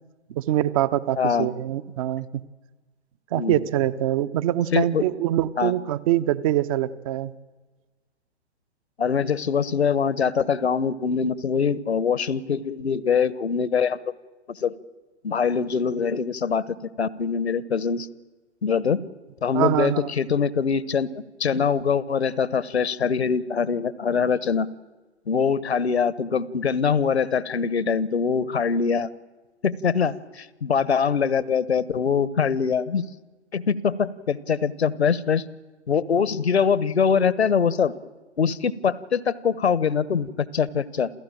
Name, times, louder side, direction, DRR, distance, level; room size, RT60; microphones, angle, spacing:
voice 1, 0.3-2.4 3.3-7.3 19.5-20.1, right 13 dB, 30° right, 16 dB, 0.9 m, -24 dB
voice 2, 1.2-1.5 3.3-3.6 4.7-5.0 5.6-5.7 9.0-14.1 14.5-14.7 15.2-18.1 18.6-19.0 19.4-21.1 21.4-24.7 25.3-29.1 29.6-33.0 33.5-35.4 35.9-37.9 38.4-41.1, left 6 dB, 65° left, 19 dB, 1.2 m, -23 dB
28.0 x 15.5 x 8.9 m, 1.3 s
figure-of-eight pair, 115°, 35 cm